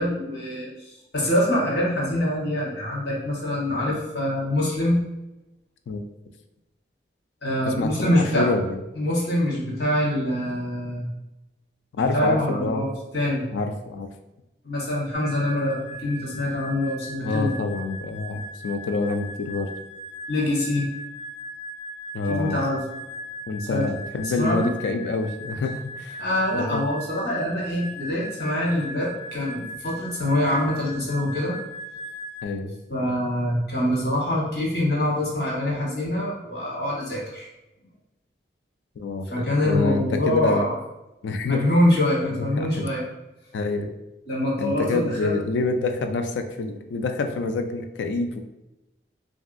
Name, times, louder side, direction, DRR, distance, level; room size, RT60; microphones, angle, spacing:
voice 1, 0.0-5.0 7.4-8.5 8.9-11.1 12.0-13.5 14.6-17.5 20.3-20.9 22.3-22.8 23.7-23.8 24.4-24.7 26.2-31.5 32.9-37.5 39.3-40.7 41.4-43.0 44.3-45.3, left 1 dB, 60° left, -4 dB, 1.1 m, -25 dB
voice 2, 7.7-8.8 12.0-12.9 13.5-14.1 17.2-19.7 22.1-22.6 23.5-26.2 26.5-26.8 32.4-32.7 39.0-40.6 41.2-41.8 42.6-42.8 43.5-43.9 44.6-48.4, left 3 dB, 85° left, 6 dB, 0.3 m, -27 dB
sound 1, 15.1-32.5, equal, 25° right, 0.3 m, -39 dB
3.0 x 2.6 x 2.5 m, 0.96 s
head